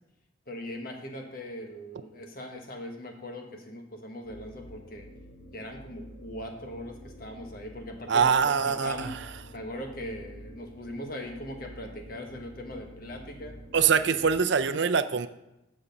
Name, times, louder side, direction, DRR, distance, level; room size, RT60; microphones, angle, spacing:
voice 1, 0.5-5.1 5.5-9.1 9.5-13.6, left 1 dB, 50° left, 3 dB, 1.4 m, -40 dB
sound 1, 4.2-14.4, equal, 90° left, 2.6 m, -48 dB
voice 2, 8.1-9.2 13.7-15.3, right 6 dB, 65° right, 10 dB, 0.5 m, -24 dB
9.8 x 6.3 x 5.3 m, 0.94 s
head